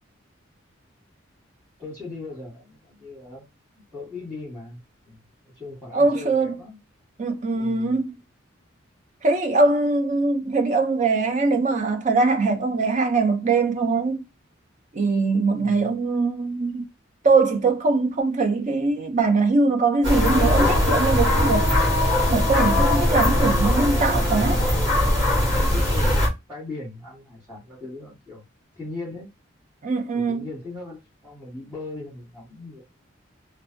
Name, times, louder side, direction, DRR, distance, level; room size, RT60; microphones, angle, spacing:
voice 1, 1.8-3.4 3.8-4.8 5.0-5.2 5.4-6.8 7.5-8.0 15.5-15.9 24.3-28.4 28.7-29.3 30.1-32.8, left 3 dB, 5° right, 1.4 m, -38 dB
voice 2, 5.9-6.6 7.2-8.1 9.2-14.2 14.9-16.9 17.2-21.7 22.3-24.6 29.8-30.4, right 3 dB, 35° right, 0.4 m, -22 dB
sound 1, 20.0-26.3, left 1 dB, 60° right, 1.2 m, -20 dB
2.6 x 2.1 x 2.6 m
head